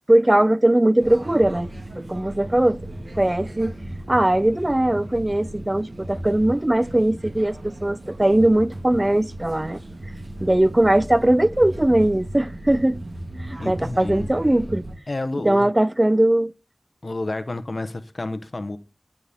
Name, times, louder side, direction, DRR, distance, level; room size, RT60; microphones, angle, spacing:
voice 1, 0.1-1.7 2.0-2.8 3.2-3.8 4.1-9.8 10.4-13.0 13.4-14.9 15.4-16.5, right 1 dB, 30° right, 0.5 m, -20 dB
sound 1, 1.0-15.0, right 1 dB, 80° right, 2.2 m, -36 dB
voice 2, 13.6-14.3 15.1-15.7 17.0-18.8, left 2 dB, 75° left, 1.1 m, -30 dB
10.0 x 9.3 x 3.6 m
wide cardioid pair, 50°, 0 cm